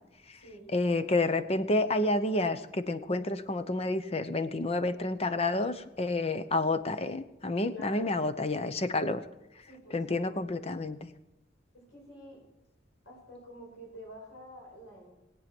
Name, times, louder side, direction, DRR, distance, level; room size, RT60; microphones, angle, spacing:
voice 1, 0.7-9.2 9.9-11.1, left 2 dB, 35° left, 11 dB, 0.8 m, -29 dB
voice 2, 7.7-8.2 9.7-10.0 10.3-10.4 11.7-12.4 13.0-15.1, equal, 80° left, -3 dB, 5.2 m, -48 dB
20.0 x 8.6 x 6.1 m, 0.93 s
head